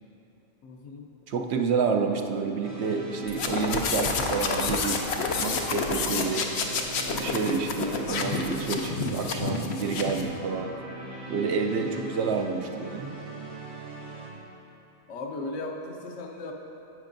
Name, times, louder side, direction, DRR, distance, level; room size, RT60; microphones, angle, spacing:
voice 1, 0.6-1.1 11.8-12.1 15.1-16.5, left 2 dB, 90° left, 1 dB, 1.2 m, -37 dB
voice 2, 1.3-5.0 5.4-6.5 7.1-10.7 11.3-13.1, right 5 dB, 70° right, 3 dB, 0.8 m, -29 dB
sound 1, 2.6-14.3, right 1 dB, 30° right, 1.4 m, -40 dB
sound 2, 3.3-10.3, left 4 dB, 65° left, 0.9 m, -29 dB
11.0 x 8.2 x 2.6 m, 2.9 s
omnidirectional pair, 1.2 m